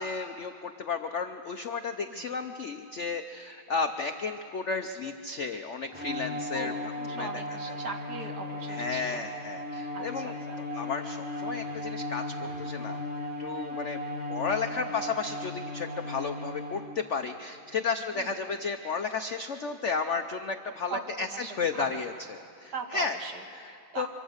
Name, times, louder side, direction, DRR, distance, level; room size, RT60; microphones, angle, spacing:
voice 1, 0.0-6.7 7.1-7.3 7.7-7.8 8.7-10.3 10.7-13.0 13.4-14.0 14.3-23.2 23.5-24.1, left 5 dB, 80° left, 7 dB, 0.6 m, -33 dB
Bowed string instrument, 5.9-17.1, left 1 dB, 5° right, 2.6 m, -36 dB
voice 2, 6.5-9.2 9.9-10.6 15.0-15.1 18.1-18.3 20.9-22.0 22.7-23.4 23.9-24.1, right 3 dB, 50° right, 4 dB, 2.1 m, -39 dB
25.5 x 24.0 x 6.4 m, 2.6 s
omnidirectional pair, 2.3 m